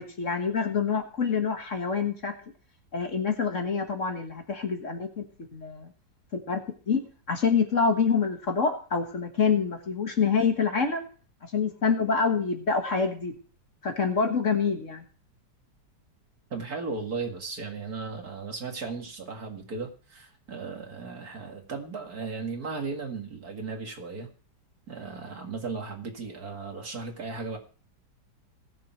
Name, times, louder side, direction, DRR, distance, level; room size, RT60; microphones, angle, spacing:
voice 1, 0.0-2.3 2.9-5.2 5.5-5.9 6.5-6.6 6.9-11.0 11.4-13.4 13.8-15.0, left 5 dB, 45° left, 5 dB, 1.7 m, -26 dB
voice 2, 16.5-24.3 24.9-27.6, right 4 dB, 55° right, 3 dB, 2.6 m, -36 dB
19.5 x 6.9 x 4.6 m, 0.39 s
omnidirectional pair, 1.9 m